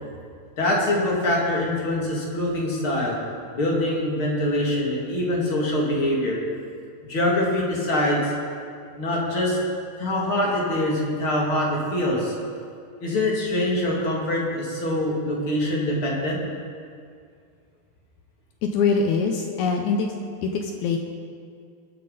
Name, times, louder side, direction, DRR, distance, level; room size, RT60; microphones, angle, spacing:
voice 1, 0.6-3.2 3.5-6.4 7.1-8.3 9.0-9.6 10.0-12.3 13.0-16.4, left 1 dB, 40° left, -3 dB, 2.6 m, -24 dB
voice 2, 18.6-20.1 20.4-21.0, left 5 dB, 90° left, 3 dB, 1.7 m, -23 dB
22.0 x 9.4 x 4.0 m, 2.2 s
omnidirectional pair, 4.5 m